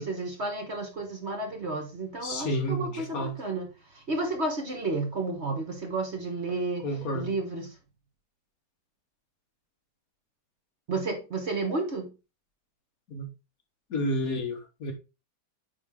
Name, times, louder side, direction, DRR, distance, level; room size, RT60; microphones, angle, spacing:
voice 1, 0.0-3.7 3.9-6.8 7.1-7.7 10.9-12.1, right 3 dB, 40° right, 1.4 m, -31 dB
voice 2, 2.2-3.4 6.8-7.3 13.1-13.3 13.9-14.9, equal, 55° left, 1.6 m, -31 dB
9.2 x 3.6 x 3.5 m
omnidirectional pair, 1.9 m